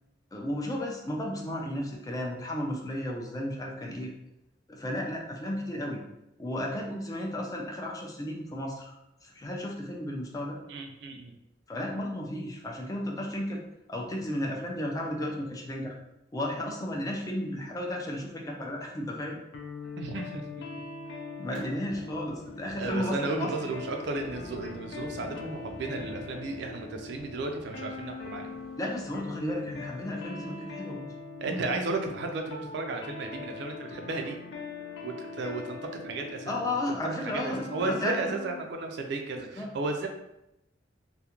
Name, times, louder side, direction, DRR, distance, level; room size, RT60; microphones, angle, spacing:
voice 1, 0.3-4.1 4.7-6.0 6.4-9.0 9.2-10.6 11.7-13.6 13.9-16.0 16.3-19.4 21.4-23.7 28.8-31.2 36.5-38.3 39.5-39.7, left 1 dB, 20° left, -1 dB, 0.3 m, -33 dB
voice 2, 10.7-11.3 20.0-20.4 21.5-21.6 22.8-28.5 31.4-34.4 35.0-37.0 37.2-40.1, right 3 dB, 65° right, 3 dB, 0.4 m, -34 dB
sound 1, 19.5-38.7, left 4 dB, 80° left, 0.4 m, -42 dB
sound 2, 21.5-30.9, equal, 35° left, 0.8 m, -50 dB
2.3 x 2.1 x 2.8 m, 0.87 s
head